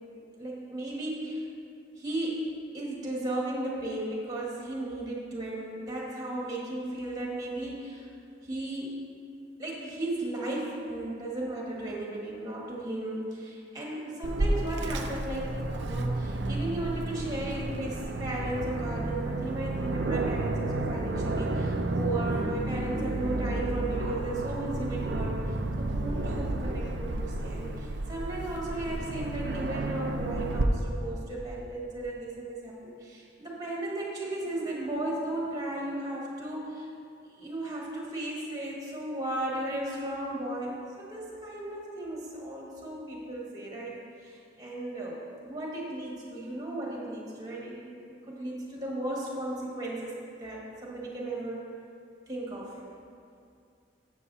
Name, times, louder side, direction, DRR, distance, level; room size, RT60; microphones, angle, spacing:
voice 1, 0.4-1.4 2.0-8.1 8.4-9.0 9.6-36.9 37.4-50.1 50.4-51.6 52.3-52.8, right 1 dB, 20° right, -4 dB, 1.8 m, -35 dB
Aircraft, 14.2-30.6, right 2 dB, 75° right, 0.6 m, -31 dB
14.0 x 7.1 x 2.8 m, 2.4 s
head